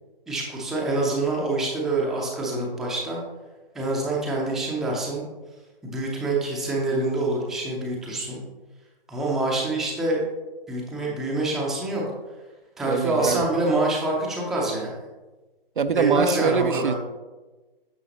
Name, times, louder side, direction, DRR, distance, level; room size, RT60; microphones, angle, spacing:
voice 1, 0.3-3.2 3.7-5.2 5.8-8.4 9.1-10.3 10.7-12.0 12.8-15.0 15.9-16.9, right 2 dB, ahead, -3 dB, 0.6 m, -26 dB
voice 2, 12.9-13.5 15.8-16.9, right 6 dB, 60° right, 11 dB, 0.5 m, -23 dB
10.0 x 6.2 x 2.9 m, 1.2 s
figure-of-eight pair, 135°, 29 cm